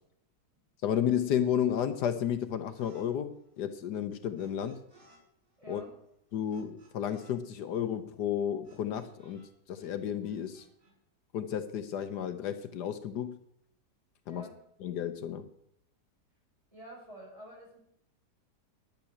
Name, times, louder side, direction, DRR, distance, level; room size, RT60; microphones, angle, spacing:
voice 1, 0.8-4.8 5.7-5.8 6.3-9.4 9.7-10.7 11.3-13.3 14.3-14.4 14.8-15.4, left 9 dB, 75° left, 10 dB, 1.4 m, -32 dB
sound 1, 2.7-3.1 3.3-5.2 5.5-9.5 9.7-10.9, right 2 dB, 75° right, 4.8 m, -62 dB
voice 2, 5.6-5.9 14.3-14.6 16.7-17.8, right 1 dB, 20° right, -4 dB, 6.2 m, -48 dB
10.5 x 8.9 x 8.5 m, 0.74 s
omnidirectional pair, 1.8 m